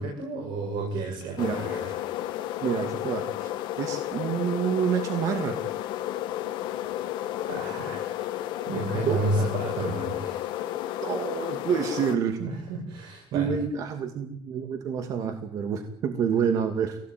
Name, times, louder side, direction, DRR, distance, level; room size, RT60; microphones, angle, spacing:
voice 1, 0.0-1.9 7.5-8.4 8.7-10.6 12.4-13.5, right 2 dB, 90° right, 0 dB, 7.4 m, -31 dB
sound 1, 1.4-12.2, left 13 dB, 85° left, 2.0 m, -32 dB
voice 2, 2.6-3.5 3.8-5.6 9.0-9.2 11.0-12.4 13.3-17.0, right 7 dB, 45° right, 6 dB, 2.4 m, -28 dB
26.0 x 18.0 x 9.5 m, 0.67 s
cardioid pair, 180°, 8 cm